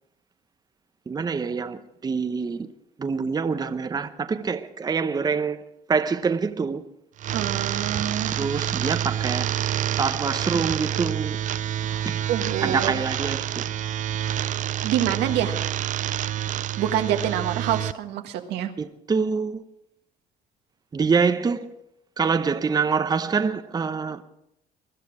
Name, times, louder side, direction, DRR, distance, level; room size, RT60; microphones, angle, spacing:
voice 1, 1.1-2.7 3.0-6.8 8.3-9.5 9.9-11.4 12.1-12.2 12.6-13.6 18.8-19.6 20.9-21.7 22.2-24.2, right 5 dB, 25° right, 0.8 m, -25 dB
sound 1, 7.2-17.9, right 11 dB, 50° right, 0.5 m, -28 dB
voice 2, 7.3-8.4 11.8-12.0 12.3-12.9 14.8-15.5 16.8-18.7, right 10 dB, 85° right, 1.5 m, -26 dB
21.0 x 11.5 x 4.9 m
cardioid pair, 110°, 17 cm